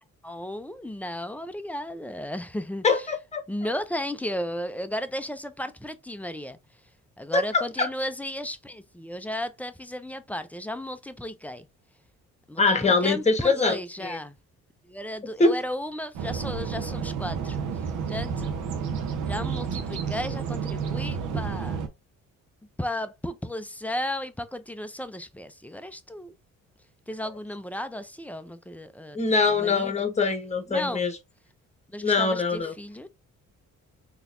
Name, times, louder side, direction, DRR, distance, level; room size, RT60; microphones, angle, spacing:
voice 1, 0.2-2.8 3.5-6.6 7.2-11.7 12.5-14.4 14.9-17.6 18.1-18.6 19.3-21.8 22.8-26.3 27.1-29.2 29.4-30.1 30.7-31.1 31.9-33.1, left 1 dB, 5° left, 0.4 m, -34 dB
voice 2, 2.8-3.4 7.3-7.9 12.6-14.2 15.4-15.6 29.1-31.2 32.0-32.7, left 3 dB, 20° left, 1.1 m, -23 dB
sound 1, 16.1-21.9, right 6 dB, 85° right, 0.8 m, -30 dB
3.9 x 3.0 x 2.5 m
cardioid pair, 90°, 30 cm